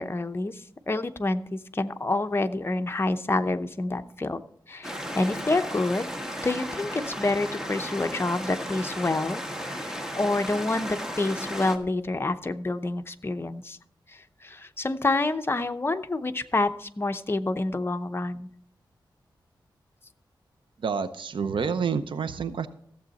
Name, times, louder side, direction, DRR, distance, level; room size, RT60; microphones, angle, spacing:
voice 1, 0.0-4.4 4.7-6.1 6.4-13.8 14.4-18.5, left 2 dB, 30° left, 8 dB, 0.7 m, -28 dB
sound 1, 4.8-11.8, equal, 5° right, 1.4 m, -35 dB
voice 2, 20.8-22.7, right 6 dB, 85° right, 12 dB, 0.7 m, -28 dB
14.5 x 7.7 x 4.1 m, 0.67 s
wide cardioid pair, 85°, 8 cm